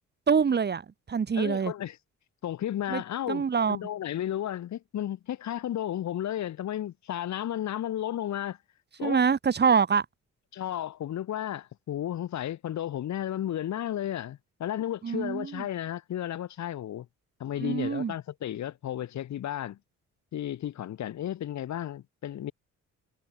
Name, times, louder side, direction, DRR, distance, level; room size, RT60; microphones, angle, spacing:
voice 1, 0.3-0.8 1.1-1.7 2.9-3.0 3.3-3.8 9.0-10.0 15.0-15.6 17.6-18.1, right 6 dB, 35° right, 1.2 m, -25 dB
voice 2, 1.4-2.0 2.4-8.6 9.0-9.2 10.5-17.1 17.4-19.8 20.3-22.5, left 11 dB, 65° left, 2.0 m, -33 dB
cardioid pair, 90°, 30 cm